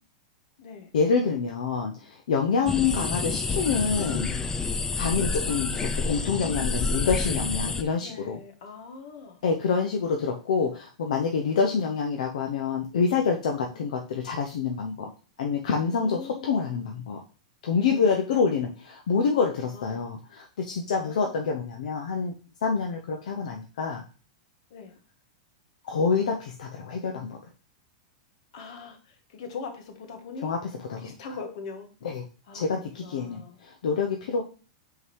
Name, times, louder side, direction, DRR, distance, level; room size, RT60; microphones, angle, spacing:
voice 1, 0.9-4.3 5.0-8.4 9.4-15.1 15.4-17.2 17.6-22.3 22.6-24.0 25.8-27.4 30.4-30.6 30.9-31.1 32.0-32.2 32.5-34.4, left 5 dB, 80° left, 3 dB, 0.9 m, -27 dB
sound 1, 2.7-7.8, left 4 dB, 10° left, 0.4 m, -28 dB
voice 2, 6.4-6.7 8.0-9.4 11.5-11.7 13.7-13.8 15.9-16.6 17.8-18.0 19.7-20.0 21.0-21.4 24.7-24.9 28.5-30.5 31.0-31.9 32.5-32.7 33.0-33.6 34.3-34.4, left 4 dB, 65° left, 6 dB, 1.6 m, -41 dB
5.7 x 4.0 x 4.7 m, 0.36 s
supercardioid pair, 145°, 4 cm